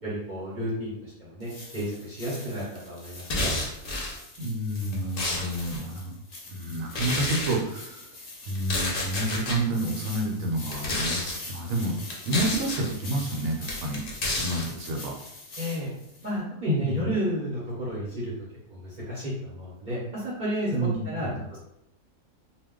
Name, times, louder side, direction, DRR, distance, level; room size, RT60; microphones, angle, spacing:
voice 1, 0.0-3.5 15.6-15.9 16.2-18.3 18.7-21.6, equal, 40° right, -8 dB, 0.8 m, -32 dB
sound 1, 1.4-16.3, left 2 dB, 75° left, 0.3 m, -44 dB
sound 2, 3.2-4.2 4.8-5.8 6.9-7.6 8.5-9.6 10.6-11.4 12.1-12.9 13.7-14.7, left 2 dB, 50° left, 0.7 m, -30 dB
voice 2, 4.4-6.1 6.5-8.1 8.5-11.9 12.2-14.0 14.4-15.1 16.7-17.1 20.7-21.5, right 1 dB, 75° right, 1 dB, 1.0 m, -29 dB
2.3 x 2.2 x 3.6 m, 0.81 s
omnidirectional pair, 1.4 m